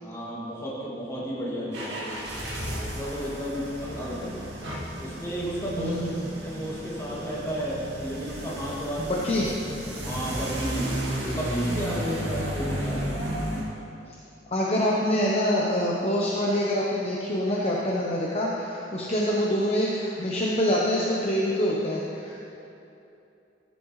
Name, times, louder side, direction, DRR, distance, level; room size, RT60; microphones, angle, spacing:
voice 1, 0.0-2.3 2.7-4.5 5.0-6.0 6.4-9.1 9.4-9.5 10.0-13.1 18.9-19.1, equal, 15° left, -6 dB, 2.4 m, -33 dB
sound 1, 1.7-13.6, equal, 65° right, 2.3 m, -33 dB
voice 2, 5.8-6.3 9.0-9.5 14.5-22.4, equal, 35° left, -4 dB, 0.9 m, -25 dB
15.5 x 9.3 x 3.2 m, 2.8 s
head